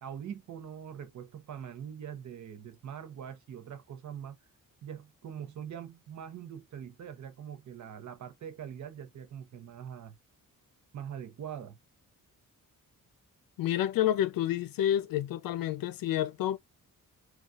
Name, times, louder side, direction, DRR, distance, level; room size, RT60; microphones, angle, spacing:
voice 1, 0.0-4.4 4.8-10.2 10.9-11.8, right 8 dB, 60° right, 0.8 m, -43 dB
voice 2, 13.6-16.6, left 12 dB, 85° left, 0.5 m, -29 dB
3.9 x 2.4 x 2.3 m
wide cardioid pair, 180°, 33 cm